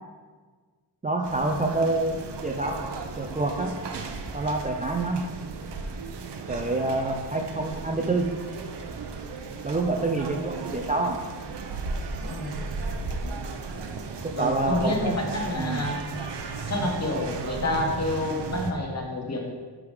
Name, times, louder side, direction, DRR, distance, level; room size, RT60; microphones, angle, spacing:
voice 1, 1.0-2.9 3.2-3.7 4.3-5.2 6.5-8.2 9.6-11.2 14.2-15.2 15.6-15.8, right 2 dB, 20° right, 2 dB, 0.4 m, -27 dB
sound 1, 1.2-18.7, right 4 dB, 75° right, 0.8 m, -35 dB
voice 2, 14.4-16.0 16.7-19.5, left 2 dB, 35° left, 1 dB, 1.3 m, -28 dB
10.5 x 3.7 x 5.0 m, 1.5 s
wide cardioid pair, 155°, 42 cm